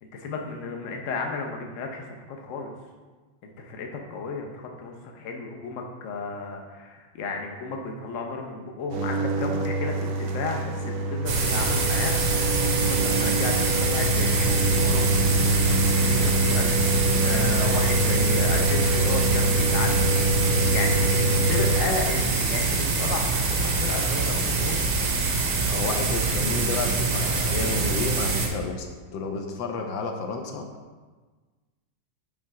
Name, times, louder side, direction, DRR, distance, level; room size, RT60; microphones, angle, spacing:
voice 1, 0.0-2.7 3.4-12.3 12.7-15.1 15.8-20.0 20.3-24.9, left 4 dB, 60° left, 2 dB, 0.8 m, -33 dB
sound 1, 8.9-21.8, right 1 dB, 70° right, 0.9 m, -25 dB
sound 2, 11.3-28.5, right 4 dB, 85° right, 1.7 m, -25 dB
voice 2, 25.7-30.7, left 4 dB, 75° left, 3 dB, 1.4 m, -31 dB
7.4 x 3.7 x 4.7 m, 1.4 s
omnidirectional pair, 2.1 m